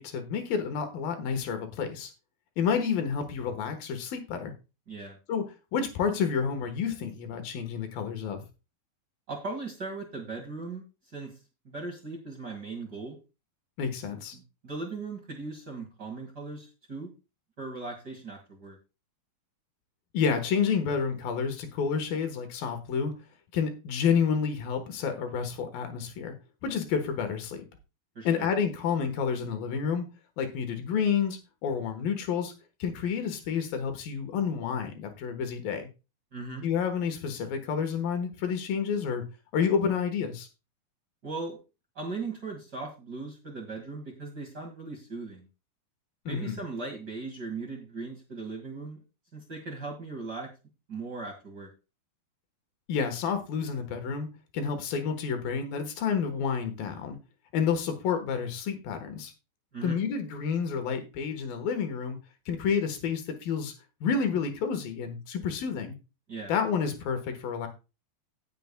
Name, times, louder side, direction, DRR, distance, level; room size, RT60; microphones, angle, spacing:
voice 1, 0.0-2.1 2.6-4.5 5.3-5.4 5.7-8.4 13.8-14.4 20.1-23.1 23.5-26.3 26.6-27.6 28.2-30.0 30.4-32.5 32.8-35.9 36.6-39.2 39.5-40.5 46.3-46.6 52.9-54.3 54.5-57.2 57.5-59.3 59.8-62.2 62.5-63.7 64.0-66.0 66.5-67.7, left 6 dB, 75° left, 7 dB, 3.0 m, -29 dB
voice 2, 4.9-5.2 9.3-11.4 11.6-13.2 14.3-17.1 17.6-18.8 28.2-28.5 36.3-36.6 41.2-41.6 42.0-45.5 46.3-49.0 49.3-50.5 50.9-51.7 59.7-60.0 66.3-66.5, right 3 dB, 35° right, 0 dB, 1.8 m, -38 dB
18.0 x 6.9 x 2.2 m, 0.29 s
omnidirectional pair, 4.3 m